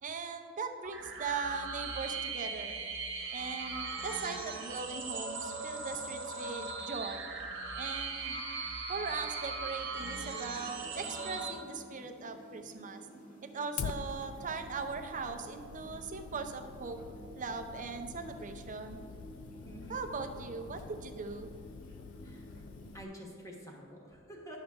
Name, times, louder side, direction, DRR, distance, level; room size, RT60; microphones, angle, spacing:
voice 1, 0.0-2.8 3.3-7.3 7.8-8.4 8.9-13.0 13.4-17.0 17.3-19.0 19.9-21.5, right 4 dB, 40° right, 7 dB, 0.6 m, -39 dB
sound 1, 0.8-11.5, right 4 dB, 55° right, 1.2 m, -39 dB
atmo-tapwater, 10.5-23.0, right 1 dB, 40° left, 1.4 m, -53 dB
Fire, 13.8-23.0, left 6 dB, 75° left, 0.3 m, -46 dB
voice 2, 19.6-20.1 22.2-22.5 22.9-24.6, equal, 15° left, -1 dB, 1.3 m, -48 dB
10.5 x 6.4 x 3.5 m, 2.4 s
head